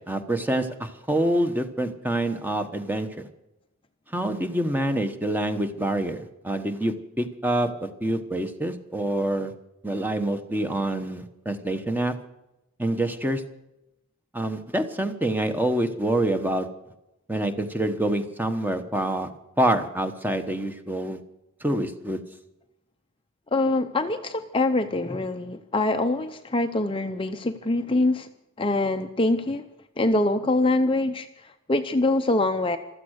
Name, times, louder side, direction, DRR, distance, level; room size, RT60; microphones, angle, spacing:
voice 1, 0.0-3.1 4.1-9.5 9.8-12.1 12.8-13.4 14.3-16.7 17.3-19.3 19.6-21.2 21.6-22.2, right 1 dB, 10° right, 8 dB, 1.1 m, -26 dB
voice 2, 23.5-28.3 28.6-29.6 30.0-31.3 31.7-32.8, left 2 dB, 25° left, 7 dB, 0.6 m, -24 dB
15.5 x 13.5 x 6.5 m, 0.89 s
head